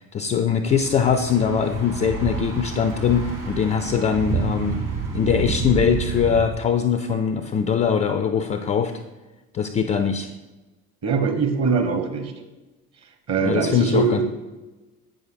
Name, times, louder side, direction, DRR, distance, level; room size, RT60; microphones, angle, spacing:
voice 1, 0.0-4.8 5.1-8.9 9.5-10.3 13.4-14.2, left 7 dB, 20° left, 9 dB, 0.3 m, -22 dB
Thunder / Bicycle, 0.6-6.4, right 5 dB, 80° right, 2.8 m, -29 dB
voice 2, 11.0-12.3 13.3-14.2, right 4 dB, 40° right, 6 dB, 1.4 m, -22 dB
8.2 x 6.3 x 4.7 m, 1.1 s
figure-of-eight pair, 60°, 42 cm